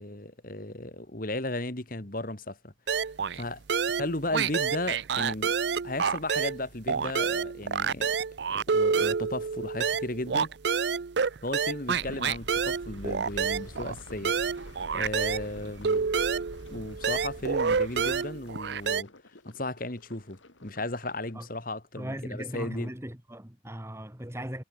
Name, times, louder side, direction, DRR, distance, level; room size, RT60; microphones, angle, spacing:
voice 1, 0.0-2.7 3.3-3.6 4.0-5.5 5.8-8.2 8.5-10.5 11.4-14.6 14.9-16.1 16.7-19.1 19.4-22.9, left 2 dB, 45° left, 2.5 m, -35 dB
sound 1, 2.9-3.4 3.7-6.6 6.9-15.5 15.8-19.0, right 6 dB, 60° right, 0.5 m, -28 dB
sound 2, 11.9-18.2, right 1 dB, 75° right, 2.8 m, -46 dB
sound 3, 12.7-21.6, left 2 dB, 80° left, 3.3 m, -55 dB
voice 2, 22.0-24.6, equal, 15° right, 2.2 m, -38 dB
head